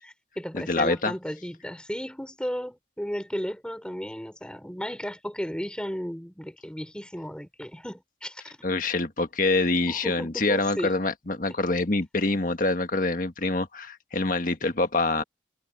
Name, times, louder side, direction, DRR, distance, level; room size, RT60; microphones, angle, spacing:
voice 1, 0.0-8.6 9.9-10.9, equal, 5° left, 3.8 m, -34 dB
voice 2, 0.5-1.1 8.6-15.2, left 2 dB, 50° left, 1.6 m, -25 dB
head